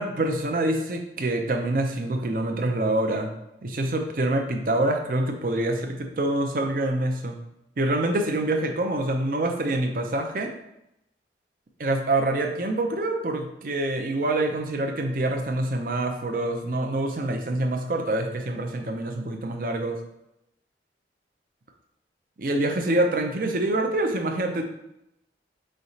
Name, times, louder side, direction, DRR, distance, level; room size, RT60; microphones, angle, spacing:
voice 1, 0.0-3.3 3.6-7.4 7.8-10.5 11.8-20.0 22.4-24.6, right 1 dB, 50° right, 4 dB, 0.5 m, -26 dB
4.7 x 3.2 x 2.7 m, 0.83 s
head